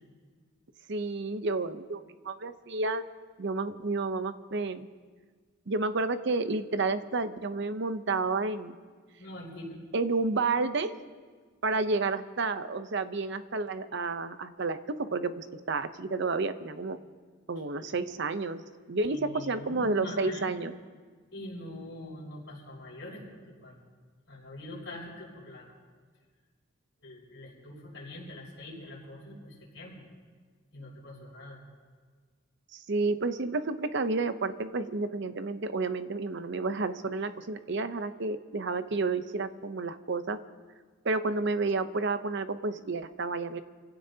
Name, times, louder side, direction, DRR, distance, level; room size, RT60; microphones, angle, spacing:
voice 1, 0.9-3.0 3.4-4.9 5.7-8.8 9.9-11.0 11.6-17.0 17.5-20.7 32.7-40.4 41.0-43.6, right 3 dB, 60° right, 11 dB, 0.7 m, -30 dB
voice 2, 9.2-9.8 17.8-18.0 19.1-20.6 21.3-23.8 24.3-25.7 27.0-30.0 30.7-31.6, left 1 dB, 65° left, -4 dB, 6.0 m, -44 dB
28.0 x 16.5 x 2.8 m, 1.5 s
head